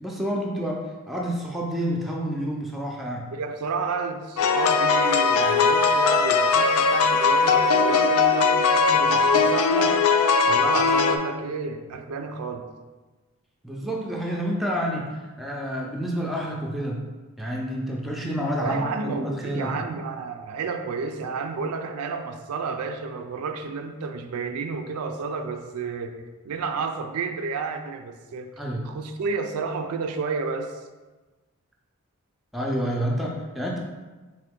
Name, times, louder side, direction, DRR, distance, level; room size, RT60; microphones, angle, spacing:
voice 1, 0.0-3.2 13.6-17.0 17.4-19.8 28.6-28.9 32.5-33.8, equal, ahead, -2 dB, 0.4 m, -29 dB
voice 2, 3.3-10.0 10.4-12.7 18.6-26.2 26.4-28.5 28.8-30.8, right 4 dB, 80° right, 7 dB, 0.4 m, -31 dB
sound 1, 4.4-11.2, left 4 dB, 75° left, 0.3 m, -20 dB
3.8 x 3.1 x 3.5 m, 1.2 s
head